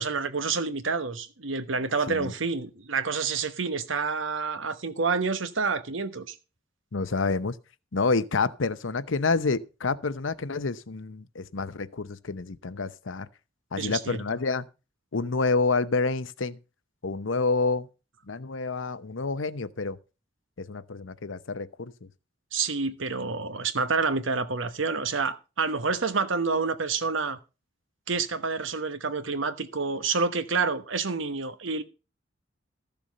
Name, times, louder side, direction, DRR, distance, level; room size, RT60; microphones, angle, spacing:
voice 1, 0.0-6.4 13.8-14.2 22.5-27.4 28.1-31.8, right 4 dB, 85° right, 1.2 m, -28 dB
voice 2, 6.9-7.6 7.9-13.3 13.7-14.6 15.1-16.6 17.0-17.9 18.3-20.0 20.6-22.1, left 4 dB, 90° left, 0.8 m, -28 dB
14.0 x 7.0 x 5.3 m
head